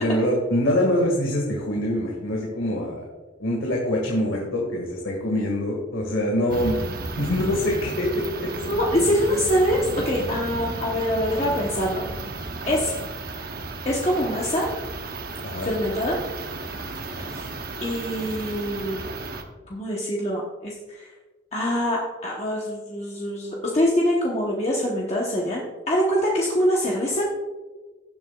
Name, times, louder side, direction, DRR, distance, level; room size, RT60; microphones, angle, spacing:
voice 1, 0.0-3.0 3.4-6.8 7.1-8.1 8.4-8.5 11.3-11.6 15.4-15.7 17.1-17.3, left 1 dB, 85° left, -2 dB, 1.9 m, -24 dB
sound 1, 6.5-19.4, right 2 dB, 45° right, 0.9 m, -34 dB
voice 2, 8.6-12.0 12.7-13.0 13.8-14.7 15.6-16.2 17.2-17.5 17.8-19.1 19.7-21.1 21.5-27.2, equal, 30° left, -3 dB, 1.1 m, -24 dB
16.5 x 7.6 x 2.4 m, 1.3 s
head